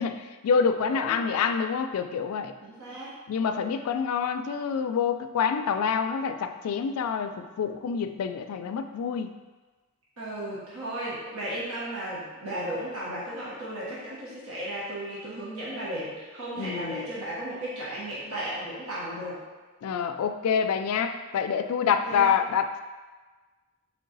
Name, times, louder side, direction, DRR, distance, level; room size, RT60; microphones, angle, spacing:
voice 1, 0.0-2.5 3.3-9.3 16.6-17.1 19.8-22.8, left 6 dB, 90° left, 8 dB, 0.3 m, -27 dB
voice 2, 0.9-1.5 2.6-3.2 10.2-19.4 21.3-21.5 21.8-22.3, right 1 dB, 85° right, -8 dB, 1.2 m, -35 dB
3.8 x 3.1 x 3.9 m, 1.3 s
head